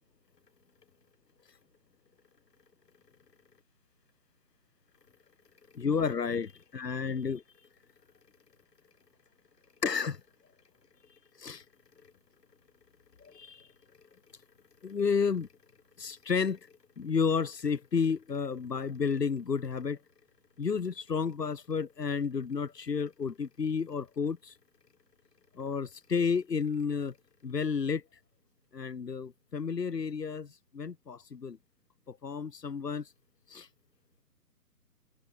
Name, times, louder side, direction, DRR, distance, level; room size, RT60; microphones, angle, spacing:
voice 1, 5.7-7.4 9.8-10.2 11.4-11.6 13.2-13.6 14.8-15.5 16.0-16.6 17.0-20.0 20.6-24.5 25.6-27.1 27.4-28.0 28.7-31.6 32.1-33.0 33.5-33.7, left 5 dB, 85° left, 1.1 m, -31 dB
figure-of-eight pair, 150°, 47 cm